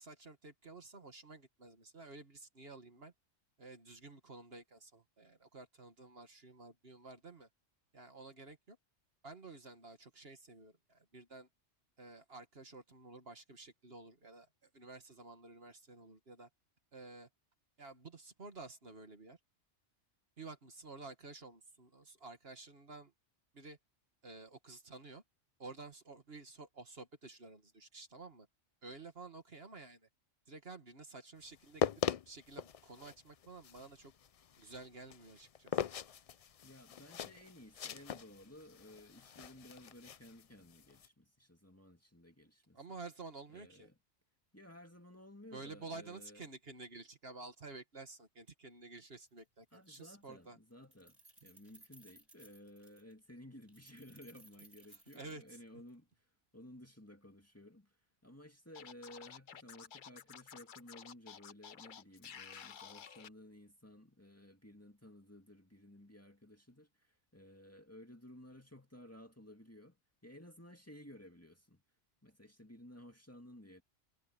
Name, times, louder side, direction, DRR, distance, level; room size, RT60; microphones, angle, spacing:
voice 1, 0.0-3.1 3.6-7.5 7.9-8.8 9.2-11.5 12.0-16.5 16.9-17.3 17.8-19.4 20.4-23.1 23.5-23.8 24.2-25.2 25.6-28.5 28.8-30.1 30.5-31.9 32.3-34.1 34.6-35.8 42.7-43.9 45.5-50.6 55.1-55.6, right 3 dB, 55° right, 2.1 m, -52 dB
sound 1, 31.5-41.1, left 8 dB, 65° left, 0.3 m, -41 dB
voice 2, 36.6-42.8 43.5-44.0 44.5-46.4 49.7-56.3 56.5-58.0 58.2-70.0 70.2-71.8 72.2-73.8, left 1 dB, 10° left, 2.1 m, -56 dB
Keys jangling, 49.3-49.4 49.7-50.4 50.7-53.1 53.7-55.9, right 2 dB, 30° right, 6.4 m, -62 dB
Scratching (performance technique), 58.7-63.3, left 8 dB, 50° left, 0.8 m, -52 dB
omnidirectional pair, 1.2 m